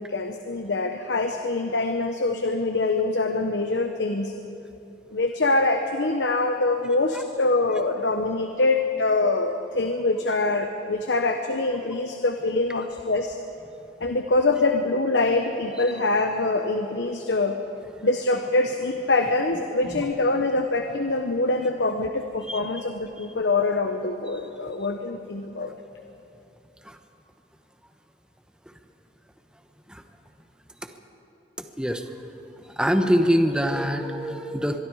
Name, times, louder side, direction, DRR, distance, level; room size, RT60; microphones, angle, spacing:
voice 1, 0.0-4.3 5.1-13.4 14.0-17.6 18.0-25.7, left 2 dB, 80° left, 5 dB, 1.1 m, -24 dB
voice 2, 22.5-22.8 23.2-23.3 26.8-27.0 29.9-30.0 31.6-32.1 32.6-34.8, equal, 5° right, 6 dB, 1.1 m, -25 dB
24.5 x 22.5 x 4.9 m, 2.8 s
head